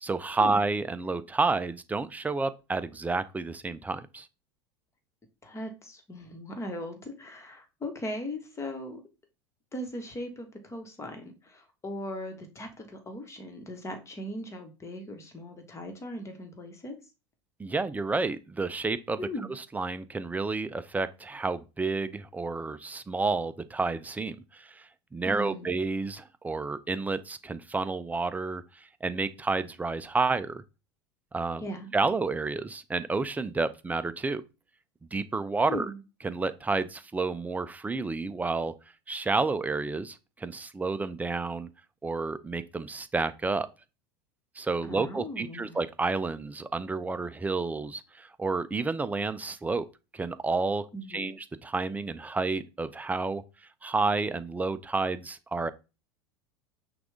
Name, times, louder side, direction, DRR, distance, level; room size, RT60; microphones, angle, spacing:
voice 1, 0.0-4.3 17.6-19.2 19.5-30.6 31.3-31.6 31.9-34.4 35.1-35.9 36.2-38.7 39.1-41.7 42.0-43.7 44.6-49.8 50.1-53.4 53.8-55.7, right 3 dB, 10° right, 0.4 m, -30 dB
voice 2, 5.4-9.0 9.7-17.0 19.2-19.5 25.2-25.8 31.6-31.9 35.7-36.0 44.9-45.8 50.9-51.3, left 1 dB, 20° left, 1.4 m, -39 dB
6.0 x 2.5 x 3.5 m
hypercardioid pair, 85°, 14 cm